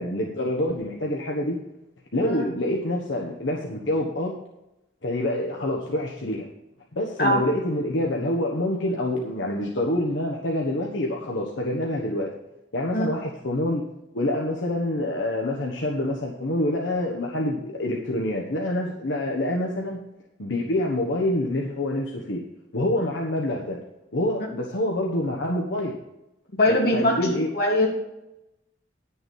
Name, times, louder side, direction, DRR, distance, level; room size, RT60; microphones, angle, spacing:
voice 1, 0.0-1.6 2.1-4.3 5.0-6.5 6.9-12.3 12.7-13.8 14.1-20.0 20.4-22.4 22.7-23.8 24.1-26.0 26.7-27.5, left 1 dB, 75° left, -1 dB, 1.3 m, -26 dB
voice 2, 26.6-27.2 27.5-27.9, left 1 dB, 55° left, -2 dB, 3.0 m, -21 dB
10.0 x 7.1 x 5.4 m, 0.92 s
head